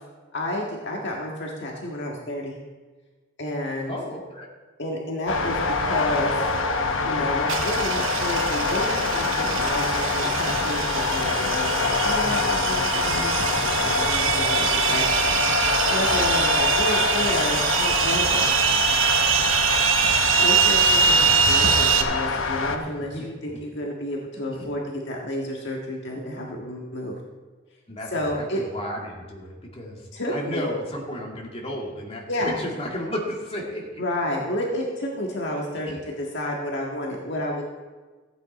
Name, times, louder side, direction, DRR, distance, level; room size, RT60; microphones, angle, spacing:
voice 1, 0.3-2.6 3.4-3.9 4.8-6.3 7.0-15.4 15.9-18.4 20.4-27.2 28.1-28.6 30.1-30.7 32.3-32.5 34.0-37.6, left 1 dB, 60° left, -1 dB, 1.7 m, -30 dB
voice 2, 3.9-4.5 13.9-14.3 22.8-23.2 24.5-24.7 27.9-34.0 35.9-36.0, left 1 dB, 30° left, -2 dB, 2.3 m, -33 dB
sound 1, 5.3-22.8, left 4 dB, 80° left, 1.1 m, -25 dB
sound 2, 7.5-22.0, right 7 dB, 85° right, 1.1 m, -23 dB
15.0 x 8.9 x 4.3 m, 1.3 s
head